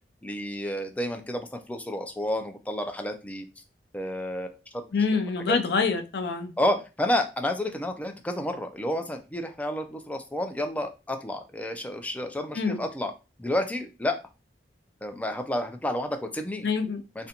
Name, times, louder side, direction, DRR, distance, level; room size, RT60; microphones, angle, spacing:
voice 1, 0.2-3.5 3.9-4.9 5.5-5.6 6.6-13.1 13.4-14.2 15.0-16.7 17.2-17.3, left 1 dB, 10° left, 0.3 m, -30 dB
voice 2, 4.9-6.5 12.6-12.8 16.6-17.0, left 5 dB, 65° left, 0.5 m, -26 dB
2.5 x 2.2 x 2.8 m
head